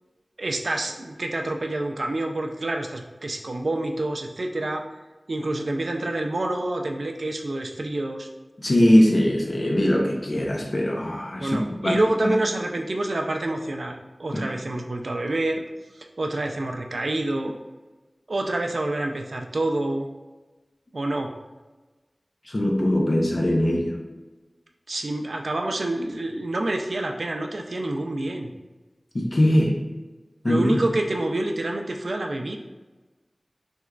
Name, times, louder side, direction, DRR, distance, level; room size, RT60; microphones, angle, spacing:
voice 1, 0.4-4.8 5.3-8.3 11.4-15.6 16.2-17.5 18.3-20.1 20.9-21.3 24.9-28.5 30.4-32.6, right 2 dB, 80° right, 3 dB, 0.3 m, -27 dB
voice 2, 8.6-11.6 11.8-12.4 22.5-23.9 29.1-29.7 30.4-30.8, left 1 dB, 60° left, 0 dB, 0.6 m, -21 dB
3.4 x 2.9 x 2.4 m, 1.2 s
wide cardioid pair, 55°, 0 cm